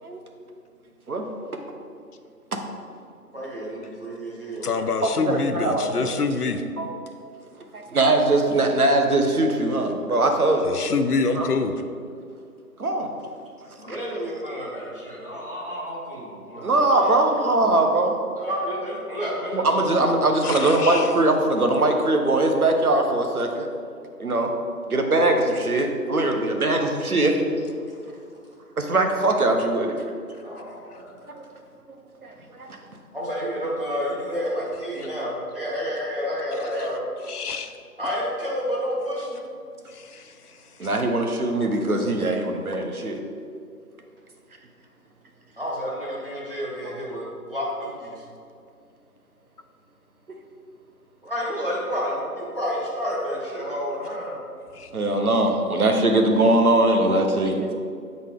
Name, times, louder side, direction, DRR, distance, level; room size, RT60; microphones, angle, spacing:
voice 1, 3.3-4.7 13.8-17.2 18.4-20.2 30.4-31.4 33.1-37.0 38.0-39.4 45.6-48.2 51.2-54.4, equal, 35° right, -6 dB, 1.1 m, -30 dB
voice 2, 4.6-6.6 10.6-11.7 20.4-21.1 37.3-37.7 39.9-40.2 54.8-54.9, left 4 dB, 75° left, 7 dB, 0.6 m, -26 dB
voice 3, 5.2-6.1 6.8-6.9 7.7-10.6 11.3-11.5 12.8-13.1 13.9-14.0 16.6-18.2 19.5-23.7 24.2-24.5 24.9-27.5 28.8-29.9 31.4-31.5 32.2-32.8 40.8-43.2 54.9-57.7, right 2 dB, 65° right, 3 dB, 0.9 m, -21 dB
7.5 x 4.0 x 3.6 m, 2.3 s
figure-of-eight pair, 175°, 47 cm